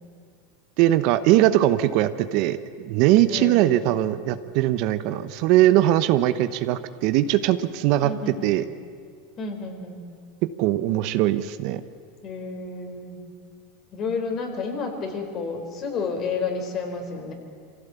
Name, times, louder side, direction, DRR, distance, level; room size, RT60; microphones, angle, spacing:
voice 1, 0.8-2.6 2.9-8.1 8.4-8.6 10.6-11.8, right 14 dB, 60° right, 12 dB, 1.0 m, -20 dB
voice 2, 3.3-4.1 8.0-8.6 9.4-10.0 12.2-13.2 13.9-17.3, left 4 dB, 45° left, 3 dB, 4.4 m, -31 dB
24.5 x 16.0 x 8.4 m, 2.1 s
hypercardioid pair, 105°, 0 cm